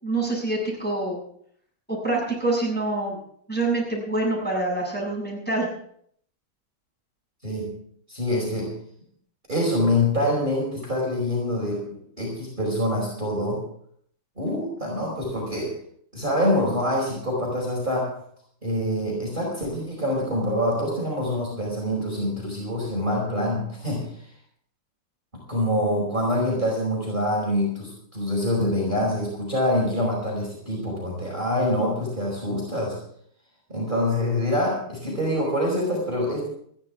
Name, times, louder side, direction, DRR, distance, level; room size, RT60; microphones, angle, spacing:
voice 1, 0.0-1.2 1.9-3.2 3.5-5.7, right 2 dB, 5° left, -4 dB, 6.7 m, -26 dB
voice 2, 7.4-7.8 8.1-8.8 9.5-13.6 14.4-15.7 16.1-18.1 18.6-24.1 25.3-33.0 33.7-36.5, left 1 dB, 20° right, -3 dB, 5.2 m, -25 dB
21.0 x 15.0 x 3.6 m, 0.65 s
omnidirectional pair, 2.4 m